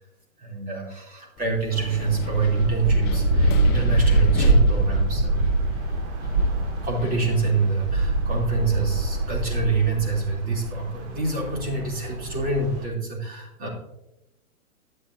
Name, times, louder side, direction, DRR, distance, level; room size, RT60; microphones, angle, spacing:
voice 1, 0.4-5.5 6.8-13.7, right 4 dB, 20° right, -1 dB, 3.2 m, -26 dB
Wind, 1.4-8.2, left 7 dB, 25° left, 0.8 m, -36 dB
sound 1, 1.7-12.9, right 2 dB, 50° right, 2.1 m, -24 dB
13.0 x 10.5 x 2.7 m, 0.90 s
hypercardioid pair, 140°, 44 cm